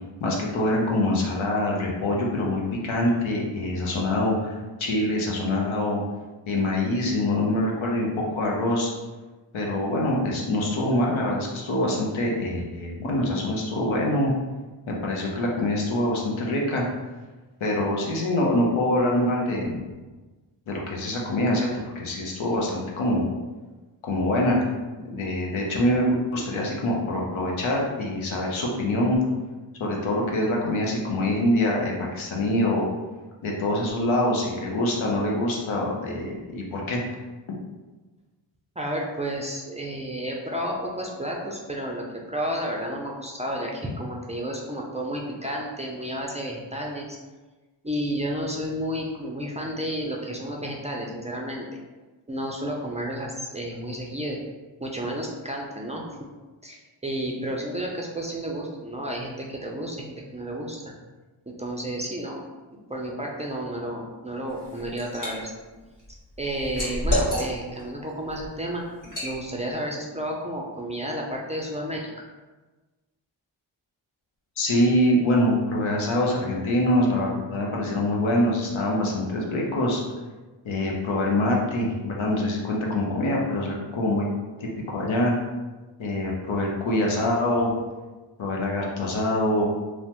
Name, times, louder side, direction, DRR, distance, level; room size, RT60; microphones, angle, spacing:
voice 1, 0.2-4.5 4.8-6.0 6.5-8.9 9.5-14.3 15.0-16.8 17.6-19.8 20.7-21.7 21.9-23.3 24.0-24.6 25.1-29.2 29.8-32.9 33.4-37.0 74.6-80.0 80.6-84.3 84.6-85.4 86.0-87.7 88.4-89.7, left 1 dB, 80° left, -2 dB, 0.7 m, -24 dB
voice 2, 38.8-47.2 47.8-51.7 52.3-54.4 54.8-56.0 56.6-60.8 61.6-62.4 62.7-65.5 66.4-68.8 69.2-72.1, right 1 dB, 15° right, -1 dB, 0.4 m, -31 dB
Liquid, 64.5-65.3 65.7-67.8 68.3-68.5 69.0-69.3, equal, 40° left, 1.4 m, -28 dB
3.1 x 2.1 x 2.9 m, 1.2 s
cardioid pair, 55°, 47 cm